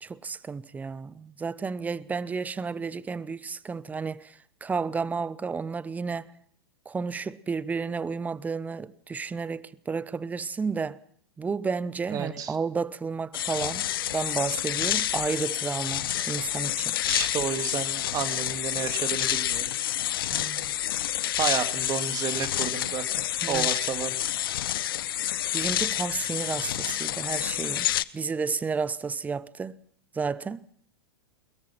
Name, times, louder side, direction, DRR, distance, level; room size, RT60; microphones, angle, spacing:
voice 1, 0.0-6.3 6.9-11.0 11.4-13.9 14.1-16.9 20.3-20.7 23.4-23.7 25.5-27.9 28.1-29.8 30.1-30.7, right 5 dB, 10° right, 0.8 m, -32 dB
voice 2, 12.1-12.6 17.0-19.7 21.4-23.1 23.5-24.2, right 8 dB, 30° right, 2.3 m, -31 dB
sound 1, 13.3-28.0, left 12 dB, 60° left, 0.8 m, -28 dB
22.5 x 21.5 x 5.9 m
figure-of-eight pair, 100°, 14 cm